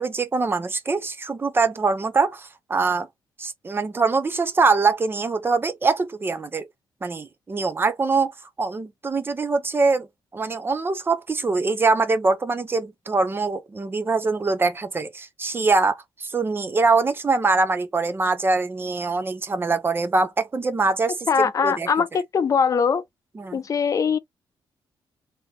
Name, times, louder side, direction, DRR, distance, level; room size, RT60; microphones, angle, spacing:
voice 1, 0.0-3.1 3.4-6.7 7.0-8.3 8.6-10.1 10.3-21.9 23.3-23.6, right 4 dB, 25° right, 0.6 m, -23 dB
voice 2, 21.3-23.0 23.5-24.2, left 6 dB, 40° left, 0.6 m, -21 dB
3.4 x 2.8 x 2.8 m
cardioid pair, 125°, 9 cm